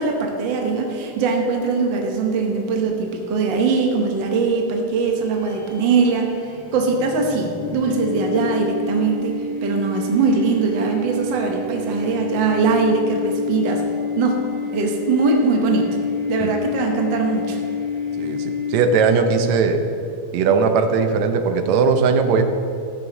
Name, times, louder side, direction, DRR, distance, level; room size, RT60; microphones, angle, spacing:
voice 1, 0.0-6.3 6.7-13.8 14.2-14.4 14.7-15.9 16.3-17.6, right 4 dB, 55° right, 1 dB, 1.3 m, -21 dB
sound 1, 5.1-19.2, left 4 dB, 50° left, 2.5 m, -28 dB
voice 2, 18.2-19.9 20.3-22.4, right 5 dB, 75° right, 7 dB, 1.8 m, -18 dB
14.0 x 9.5 x 2.9 m, 2.7 s
omnidirectional pair, 3.4 m